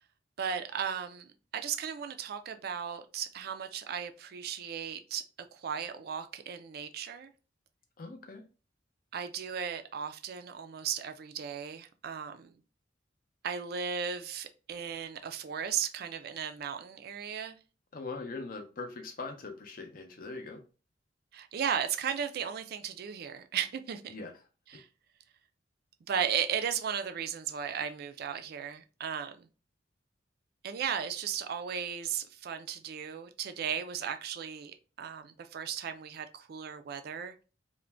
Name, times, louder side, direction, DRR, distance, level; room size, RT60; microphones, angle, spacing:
voice 1, 0.4-5.2 5.5-7.3 9.1-12.6 13.4-17.6 21.3-24.1 24.7-24.9 26.1-29.5 30.6-37.4, right 7 dB, 55° right, 0.3 m, -36 dB
voice 2, 8.0-8.4 17.9-20.6 24.1-24.3, left 3 dB, 50° left, 0.5 m, -41 dB
2.5 x 2.1 x 3.2 m
head